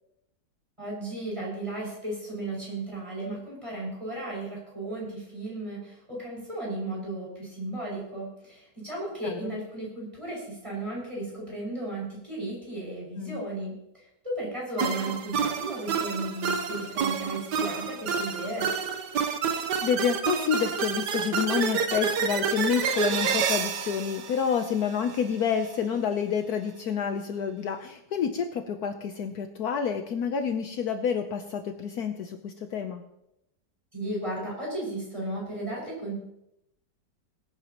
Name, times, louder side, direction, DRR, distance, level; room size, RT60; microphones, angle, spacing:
voice 1, 0.8-18.7 33.9-36.2, right 1 dB, 15° right, -4 dB, 6.2 m, -35 dB
voice 2, 9.2-9.5 13.2-13.4 19.8-33.0, left 7 dB, 65° left, 7 dB, 1.3 m, -28 dB
sound 1, 14.8-25.2, right 6 dB, 75° right, 1.6 m, -29 dB
21.5 x 9.5 x 3.0 m, 0.81 s
omnidirectional pair, 1.8 m